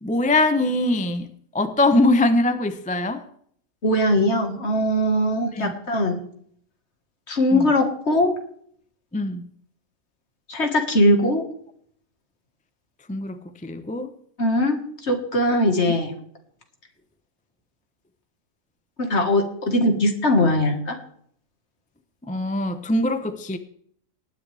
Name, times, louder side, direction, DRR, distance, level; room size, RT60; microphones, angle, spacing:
voice 1, 0.0-1.3 1.5-3.2 5.5-5.7 7.5-7.6 9.1-9.5 13.1-14.1 22.2-23.6, left 2 dB, 10° left, 0.6 m, -22 dB
voice 2, 3.8-6.2 7.3-8.3 10.5-11.5 14.4-16.1 19.0-21.0, left 1 dB, 55° left, 2.1 m, -20 dB
18.5 x 9.8 x 3.4 m
omnidirectional pair, 1.4 m